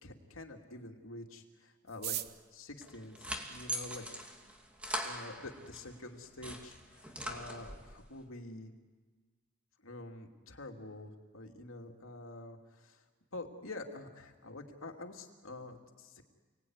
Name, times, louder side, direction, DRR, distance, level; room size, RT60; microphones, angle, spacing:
voice 1, 0.0-2.2 2.5-4.0 5.0-8.7 9.8-13.0 13.3-16.2, left 2 dB, 90° left, 2 dB, 2.8 m, -47 dB
sound 1, 1.8-4.1 4.9-5.0 5.2-5.3 5.6-6.1 6.4-6.5 6.7-7.1 7.4-7.6 7.9-8.2, right 12 dB, 50° right, 1.0 m, -43 dB
sound 2, 2.8-5.8 6.2-8.0, equal, 5° right, 2.7 m, -41 dB
30.0 x 19.5 x 9.7 m, 1.4 s
head